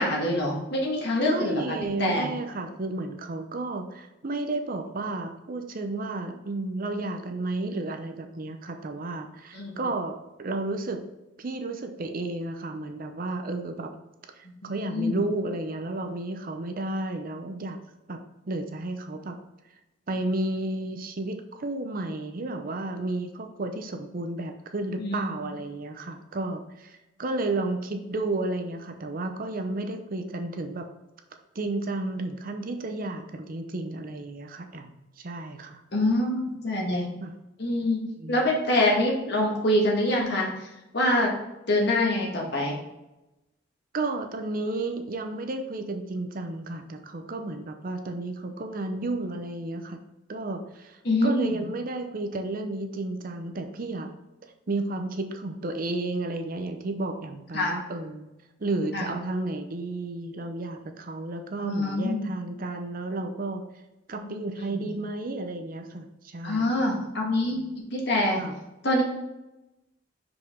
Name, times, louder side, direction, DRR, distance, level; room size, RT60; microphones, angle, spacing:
voice 1, 0.0-2.3 9.5-9.7 14.6-15.2 25.0-25.2 35.9-37.1 37.6-40.7 40.9-41.3 41.7-42.8 51.0-51.6 57.5-57.7 58.9-59.1 61.6-62.2 64.2-64.3 64.6-64.9 66.4-67.6 67.9-68.4 68.8-69.0, left 1 dB, 55° left, -2 dB, 1.7 m, -25 dB
voice 2, 1.3-11.0 11.4-13.9 14.3-17.8 18.1-18.2 18.5-19.3 20.1-30.8 31.5-35.8 37.2-37.3 38.2-38.4 43.9-50.0 50.3-54.1 54.7-58.3 58.6-63.6 64.1-66.7 67.5-67.7 68.4-68.5, right 2 dB, 45° right, 6 dB, 0.6 m, -32 dB
5.9 x 4.9 x 3.7 m, 0.96 s
head